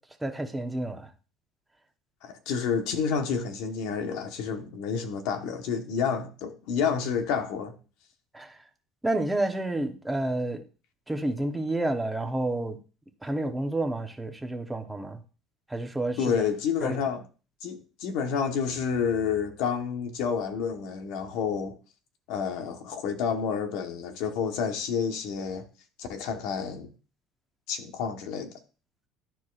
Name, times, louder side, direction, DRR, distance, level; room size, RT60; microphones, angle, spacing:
voice 1, 0.2-1.1 8.3-8.6 9.0-10.6 11.1-12.8 13.2-15.2 15.7-16.3 16.8-17.0, right 2 dB, 5° right, 0.9 m, -29 dB
voice 2, 2.2-7.8 16.2-17.2 17.6-21.7 22.3-25.6 26.0-26.9 27.7-28.5, left 6 dB, 70° left, 1.2 m, -29 dB
12.0 x 4.6 x 2.4 m
cardioid pair, 135°, 0 cm